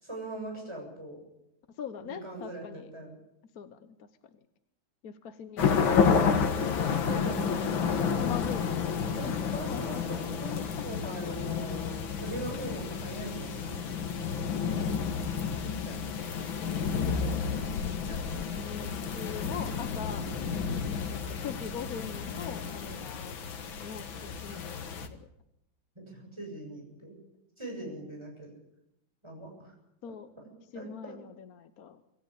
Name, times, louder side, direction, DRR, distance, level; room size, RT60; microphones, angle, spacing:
voice 1, 0.0-1.2 2.0-3.1 6.8-7.7 9.2-10.6 10.8-13.8 15.8-16.1 17.0-17.3 18.0-18.2 26.0-27.2 27.6-28.5 29.2-29.7 30.1-30.2 30.7-31.2, right 1 dB, 15° right, 0 dB, 7.6 m, -41 dB
voice 2, 1.8-2.9 3.5-4.1 5.0-6.4 8.2-8.9 9.2-10.0 10.5-10.8 11.8-12.1 12.3-12.5 16.8-17.6 18.6-20.3 21.1-25.3 30.0-30.3 30.7-32.0, left 7 dB, 55° left, 10 dB, 1.2 m, -42 dB
sound 1, 5.6-25.1, left 6 dB, 75° left, 2.3 m, -30 dB
26.0 x 14.0 x 8.6 m, 0.82 s
omnidirectional pair, 2.2 m